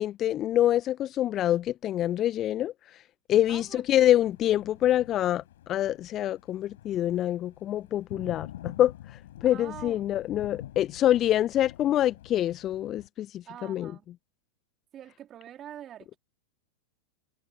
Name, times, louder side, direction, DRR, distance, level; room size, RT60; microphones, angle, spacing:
voice 1, 0.0-3.0 3.3-13.9, left 12 dB, 30° left, 1.1 m, -26 dB
Thunder, 3.4-13.1, left 13 dB, 55° left, 7.9 m, -47 dB
voice 2, 3.5-3.8 9.5-10.0 13.4-14.1 14.9-16.2, right 11 dB, 30° right, 4.1 m, -44 dB
figure-of-eight pair, 90°, 0 cm